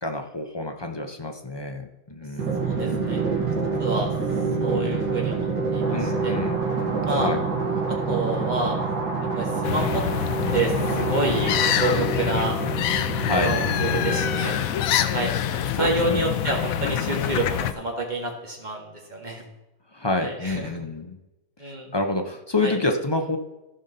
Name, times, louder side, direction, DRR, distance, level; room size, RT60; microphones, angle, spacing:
voice 1, 0.0-2.6 5.9-6.6 7.1-7.4 13.2-13.5 15.7-16.2 16.5-17.1 19.9-21.2 21.6-23.4, left 2 dB, 35° left, 4 dB, 0.4 m, -28 dB
Drum, 2.4-14.8, right 4 dB, 65° right, 2.7 m, -27 dB
voice 2, 2.6-3.2 3.8-4.1 4.6-6.3 7.0-7.3 7.9-8.8 9.4-10.0 10.5-12.6 13.3-14.6 15.1-15.4 15.8-19.4 20.2-20.7 21.6-21.9 22.6-22.7, right 2 dB, 30° right, 0 dB, 2.0 m, -28 dB
sound 1, 5.8-12.0, right 1 dB, 85° right, 2.2 m, -35 dB
sound 2, 9.6-17.7, left 10 dB, 70° left, 0.9 m, -25 dB
14.5 x 5.3 x 4.1 m, 1.0 s
omnidirectional pair, 1.7 m